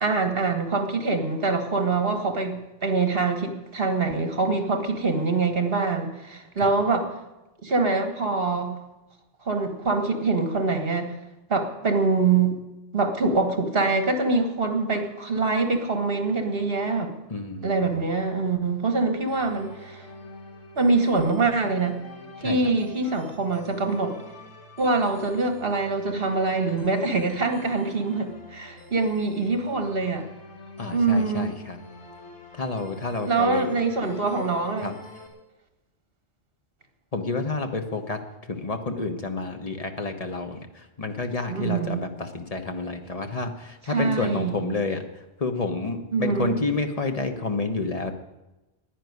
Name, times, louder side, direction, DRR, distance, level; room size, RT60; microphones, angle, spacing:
voice 1, 0.0-7.1 7.6-8.8 9.4-11.2 11.5-12.6 12.9-17.1 17.6-20.0 20.8-22.0 22.4-24.1 24.8-30.3 30.9-31.5 33.2-34.9 41.5-42.0 43.9-44.7 46.1-46.6, right 3 dB, 55° right, 7 dB, 1.7 m, -24 dB
voice 2, 17.3-18.0 22.4-22.7 30.8-31.8 32.6-33.7 34.8-34.9 37.1-38.2 38.5-45.0 45.4-48.1, left 3 dB, 35° left, 6 dB, 1.2 m, -29 dB
sound 1, 19.3-35.3, left 2 dB, 75° left, 2.4 m, -45 dB
11.0 x 9.9 x 9.5 m, 1.0 s
omnidirectional pair, 1.2 m